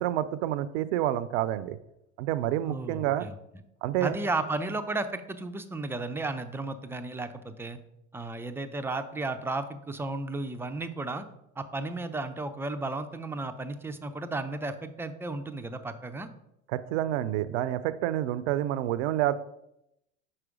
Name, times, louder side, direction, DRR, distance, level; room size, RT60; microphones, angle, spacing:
voice 1, 0.0-1.8 2.2-3.2 3.8-4.2 16.7-19.3, right 13 dB, 65° right, 15 dB, 0.5 m, -28 dB
voice 2, 2.7-3.4 4.0-7.8 8.1-11.3 11.6-16.3, right 2 dB, 5° right, 8 dB, 0.4 m, -34 dB
4.9 x 4.4 x 4.9 m, 0.83 s
hypercardioid pair, 80°, 38 cm